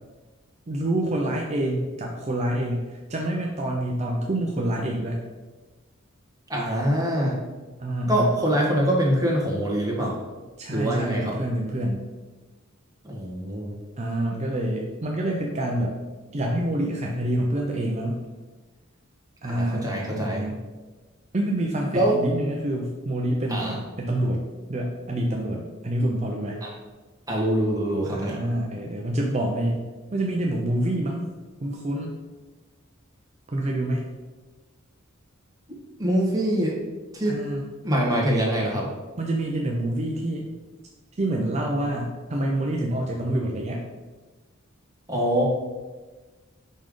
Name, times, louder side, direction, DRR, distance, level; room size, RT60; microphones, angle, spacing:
voice 1, 0.7-5.2 7.8-8.3 10.6-12.0 14.0-16.0 16.3-18.2 19.4-20.6 21.3-24.4 24.7-26.6 28.0-31.3 31.6-32.1 33.5-34.0 37.3-37.7 39.2-40.5 41.2-43.8, right 1 dB, 35° right, 0 dB, 0.6 m, -27 dB
voice 2, 6.5-7.3 8.1-10.1 10.7-11.3 13.0-13.7 19.4-20.5 21.9-22.2 23.5-23.8 26.6-26.7 27.3-28.4 36.0-36.7 37.1-37.4 37.8-38.9 45.1-45.4, right 1 dB, 15° right, -3 dB, 1.4 m, -24 dB
5.4 x 5.1 x 3.7 m, 1.3 s
head